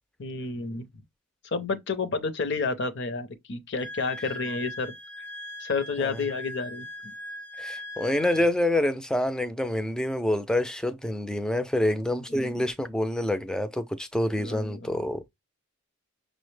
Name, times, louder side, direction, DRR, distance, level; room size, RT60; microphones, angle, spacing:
voice 1, 0.2-0.8 1.4-5.2 5.6-7.1 12.1-12.6 14.4-14.9, left 4 dB, 50° left, 0.6 m, -31 dB
Wind instrument woodwind instrument, 3.8-8.5, left 1 dB, 85° left, 0.9 m, -40 dB
voice 2, 7.6-15.3, left 1 dB, 5° left, 0.3 m, -27 dB
6.1 x 2.1 x 3.2 m
head